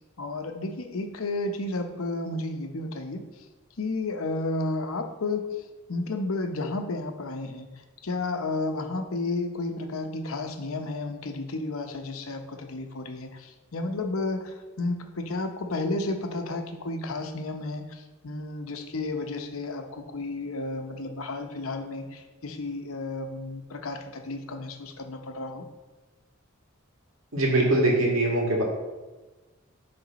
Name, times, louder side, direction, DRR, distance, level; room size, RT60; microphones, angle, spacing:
voice 1, 0.2-3.2 3.8-5.6 5.9-7.7 8.0-25.6, left 2 dB, 85° left, 5 dB, 0.8 m, -32 dB
voice 2, 27.3-28.6, right 1 dB, 80° right, -2 dB, 1.9 m, -22 dB
10.5 x 3.5 x 4.0 m, 1.2 s
head